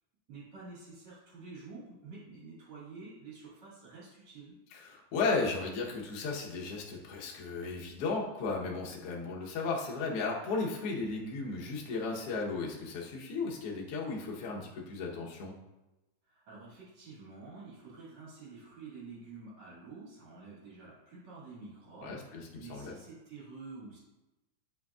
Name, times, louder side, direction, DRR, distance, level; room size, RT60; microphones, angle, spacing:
voice 1, 0.3-4.6 16.2-24.0, right 4 dB, 45° right, -8 dB, 2.6 m, -49 dB
voice 2, 4.7-15.5 22.0-22.9, left 4 dB, 60° left, -2 dB, 1.7 m, -35 dB
11.0 x 5.1 x 2.4 m, 1.0 s
omnidirectional pair, 3.8 m